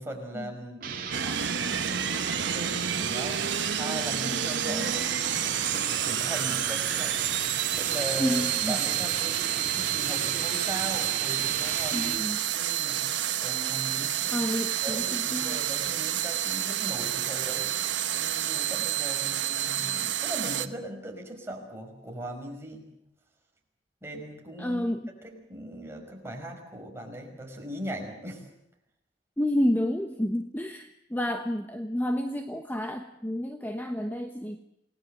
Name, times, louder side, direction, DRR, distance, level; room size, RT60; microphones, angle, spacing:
voice 1, 0.0-8.4 8.7-14.5 14.8-17.7 18.1-22.9 24.0-24.9 25.2-28.5, right 1 dB, 15° right, 1 dB, 5.5 m, -39 dB
sound 1, 0.8-12.3, right 6 dB, 50° right, 3.0 m, -36 dB
sound 2, 1.1-20.7, right 10 dB, 80° right, 1.2 m, -29 dB
voice 2, 8.2-8.8 11.9-12.4 14.3-15.0 15.3-15.6 24.6-25.1 29.4-34.6, left 1 dB, 10° left, 6 dB, 1.1 m, -30 dB
28.5 x 19.0 x 7.8 m, 0.80 s
head